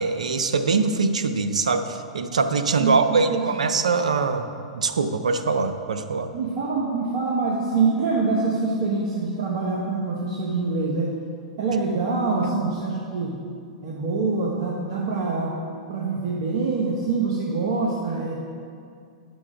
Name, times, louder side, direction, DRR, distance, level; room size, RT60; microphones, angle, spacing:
voice 1, 0.0-4.5 4.7-6.3, right 4 dB, 85° right, 9 dB, 0.6 m, -23 dB
voice 2, 2.8-3.4 6.3-11.1 11.6-13.4 13.8-15.5 15.9-18.4, right 4 dB, 55° right, -3 dB, 1.3 m, -25 dB
10.0 x 6.1 x 5.0 m, 2.3 s
hypercardioid pair, 110°, 4 cm